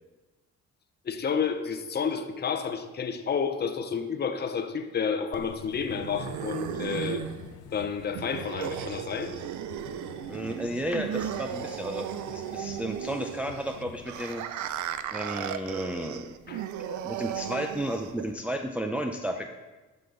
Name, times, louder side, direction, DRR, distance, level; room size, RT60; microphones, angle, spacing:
voice 1, 1.0-7.2 7.7-9.3 16.5-16.6 17.5-17.6, left 6 dB, 35° left, 7 dB, 0.8 m, -30 dB
sound 1, 5.3-14.3, left 11 dB, 90° left, 0.5 m, -47 dB
sound 2, 5.3-18.3, right 10 dB, 75° right, 0.5 m, -36 dB
voice 2, 10.3-14.7 15.1-16.3 16.8-19.5, equal, 5° right, 3 dB, 0.5 m, -33 dB
12.0 x 5.5 x 4.0 m, 1.2 s
cardioid pair, 90°, 30 cm